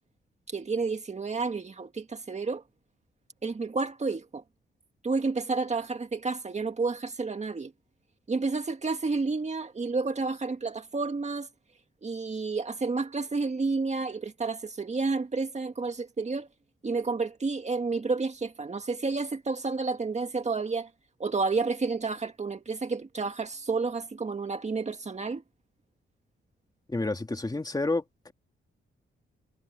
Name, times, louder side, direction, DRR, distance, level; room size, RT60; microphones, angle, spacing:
voice 1, 0.5-2.6 3.4-4.4 5.0-7.7 8.3-11.5 12.0-16.5 16.8-20.9 21.2-25.4, right 4 dB, 35° right, 1.9 m, -30 dB
voice 2, 26.9-28.3, left 2 dB, 20° left, 2.6 m, -30 dB
cardioid pair, 100°, 21 cm